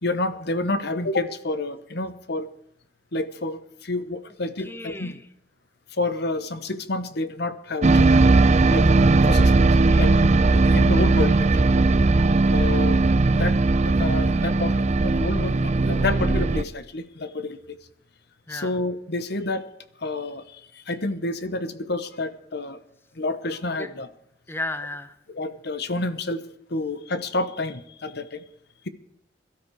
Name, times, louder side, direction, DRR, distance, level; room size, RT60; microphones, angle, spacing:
voice 1, 0.0-2.5 3.1-5.1 5.9-8.2 8.7-8.9 9.3-9.7 10.0-10.1 10.5-11.7 12.5-13.0 13.3-13.6 13.8-17.8 18.5-19.7 20.0-22.8 23.1-24.1 25.3-26.4 26.7-28.4, left 2 dB, 65° left, 12 dB, 1.2 m, -29 dB
voice 2, 4.6-5.2 9.9-10.1 18.5-18.7 23.8-23.9 24.5-25.1, left 1 dB, 15° left, 9 dB, 1.0 m, -34 dB
sound 1, 7.8-16.6, right 3 dB, 40° right, 0.6 m, -18 dB
22.0 x 13.0 x 4.8 m, 0.72 s
head